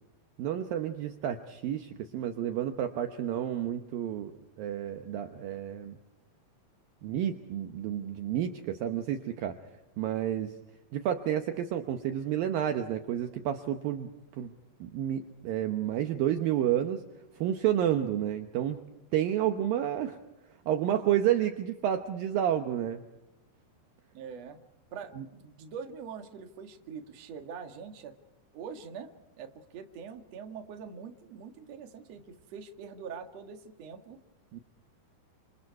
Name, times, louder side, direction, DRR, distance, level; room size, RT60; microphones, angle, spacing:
voice 1, 0.4-4.3 4.6-6.0 7.0-9.6 10.0-10.5 10.9-14.1 14.4-14.5 14.8-17.0 17.4-18.8 19.1-20.2 20.7-23.0 25.2-25.3 34.5-34.6, right 10 dB, 70° right, 7 dB, 2.5 m, -30 dB
voice 2, 24.1-24.6 24.9-28.2 28.5-29.1 29.4-34.2, right 6 dB, 50° right, 5 dB, 2.4 m, -43 dB
28.5 x 27.5 x 4.8 m, 0.92 s
omnidirectional pair, 4.7 m